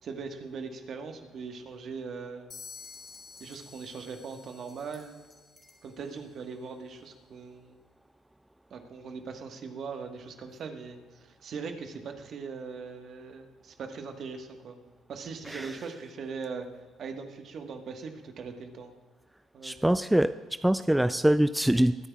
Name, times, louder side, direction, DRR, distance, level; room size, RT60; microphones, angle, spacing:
voice 1, 0.0-2.5 3.4-5.2 5.8-7.8 8.7-14.8 15.1-16.6 17.0-18.9 19.5-19.9, right 5 dB, 60° right, 5 dB, 1.4 m, -40 dB
sound 1, 2.5-6.3, left 5 dB, 45° left, 1.4 m, -50 dB
sound 2, 2.7-3.6 4.3-5.9, left 1 dB, 10° left, 3.0 m, -60 dB
voice 2, 19.6-20.3 20.6-22.1, right 1 dB, 5° right, 12 dB, 0.3 m, -24 dB
21.5 x 9.8 x 2.4 m, 1.4 s
supercardioid pair, 65°, 0 cm